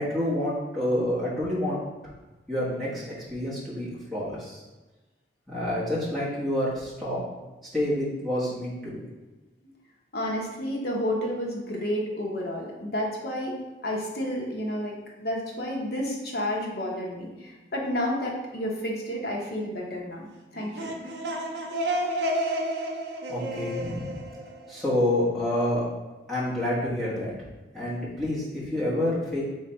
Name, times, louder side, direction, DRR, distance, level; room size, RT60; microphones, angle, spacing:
voice 1, 0.0-1.8 2.5-3.0 3.3-4.6 5.5-7.2 7.7-9.0 23.3-24.1 24.7-25.8 26.3-27.3 27.7-29.4, left 1 dB, ahead, -10 dB, 1.3 m, -28 dB
voice 2, 10.1-13.6 13.8-20.9, equal, 55° left, -2 dB, 0.9 m, -31 dB
sound 1, 20.5-25.3, right 1 dB, 65° right, 0.5 m, -31 dB
3.3 x 3.3 x 4.3 m, 1.2 s
head